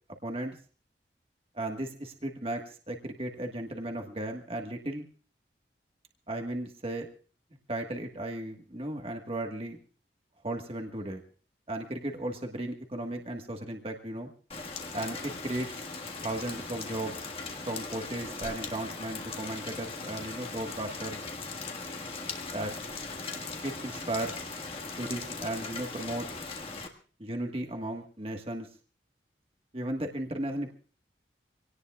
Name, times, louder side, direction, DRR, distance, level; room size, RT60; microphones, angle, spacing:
voice 1, 0.2-0.6 1.5-5.1 6.3-7.1 7.7-9.8 10.4-11.2 11.7-14.3 14.9-15.8 16.2-17.3 17.6-21.2 22.5-22.7 23.6-24.5 25.0-26.3 27.2-28.7 29.7-30.7, right 1 dB, 30° right, 3 dB, 1.5 m, -35 dB
Rain, 14.5-26.9, left 3 dB, 30° left, 1.7 m, -39 dB
26.0 x 18.0 x 2.4 m, 0.39 s
head